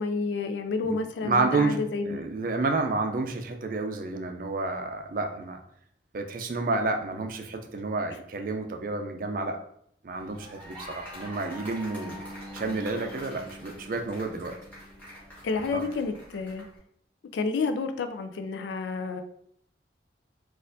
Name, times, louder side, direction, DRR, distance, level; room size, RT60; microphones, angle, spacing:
voice 1, 0.0-2.2 15.4-16.7 17.3-19.2, left 4 dB, 85° left, 7 dB, 0.4 m, -30 dB
voice 2, 1.2-1.8 2.1-5.6 6.1-9.6 10.0-12.2 12.5-14.5 15.7-15.8, right 3 dB, 50° right, 4 dB, 0.4 m, -30 dB
sound 1, 10.1-16.8, equal, 10° left, 1.2 m, -45 dB
Bass guitar, 11.9-16.0, left 1 dB, 55° left, 1.0 m, -47 dB
4.1 x 2.5 x 2.6 m, 0.70 s
head